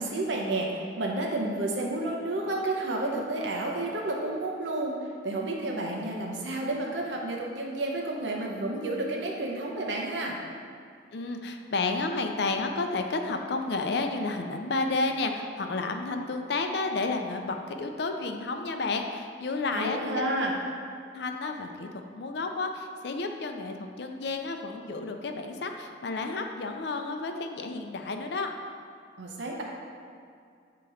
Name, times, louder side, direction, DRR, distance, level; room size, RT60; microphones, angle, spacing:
voice 1, 0.0-5.0 5.2-10.4 19.7-20.5 29.2-29.6, right 2 dB, 80° right, -1 dB, 0.8 m, -31 dB
voice 2, 11.1-20.2 21.1-28.5, left 3 dB, 60° left, 5 dB, 0.5 m, -31 dB
7.9 x 3.0 x 4.9 m, 2.3 s
head